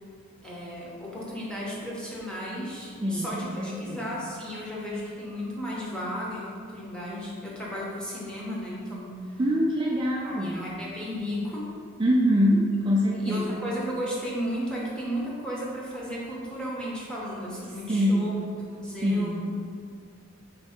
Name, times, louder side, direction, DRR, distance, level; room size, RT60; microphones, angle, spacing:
voice 1, 0.4-9.4 10.2-11.7 13.0-18.3 18.7-19.5, equal, 5° left, -6 dB, 0.8 m, -34 dB
voice 2, 3.0-4.0 9.4-10.6 12.0-13.6 17.9-18.3 19.0-19.4, equal, 25° right, -4 dB, 0.3 m, -24 dB
5.1 x 2.7 x 3.5 m, 2.1 s
head